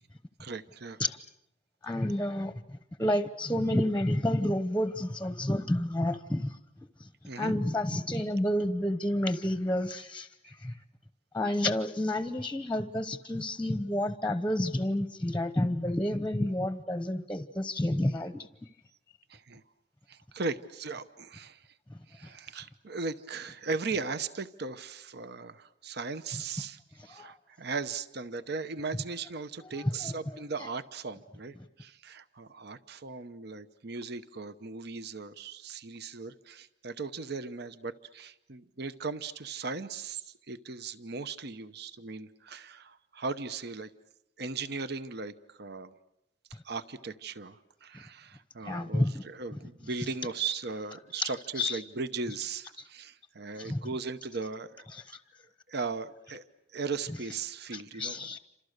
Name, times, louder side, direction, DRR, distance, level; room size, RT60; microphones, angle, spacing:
voice 1, 0.4-1.0 7.3-7.5 19.3-19.6 20.1-21.7 22.1-43.9 44.4-45.9 46.6-54.8 55.7-56.4 56.7-58.4, right 4 dB, 60° right, 12 dB, 0.9 m, -38 dB
voice 2, 1.8-2.5 3.0-6.6 7.4-10.7 11.3-18.5 21.9-22.0 27.2-27.3 29.8-30.4 48.6-49.2 51.2-51.3 51.6-51.8 53.6-53.8 57.7-58.4, left 1 dB, 10° left, 11 dB, 0.9 m, -30 dB
29.0 x 27.0 x 6.6 m, 0.83 s
head